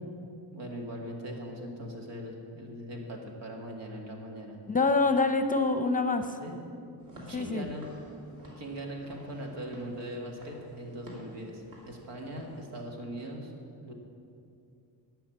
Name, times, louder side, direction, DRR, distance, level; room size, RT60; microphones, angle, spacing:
voice 1, 0.5-4.6 6.4-6.6 7.3-8.0 8.6-13.5 13.8-13.9, equal, 80° right, 1 dB, 1.9 m, -40 dB
voice 2, 4.7-6.4 7.3-7.7, left 3 dB, 20° left, 8 dB, 0.7 m, -26 dB
Walk footsteps / Siren, 7.0-12.6, equal, 50° right, 2.8 m, -51 dB
11.0 x 5.6 x 8.6 m, 2.6 s
cardioid pair, 80°, 42 cm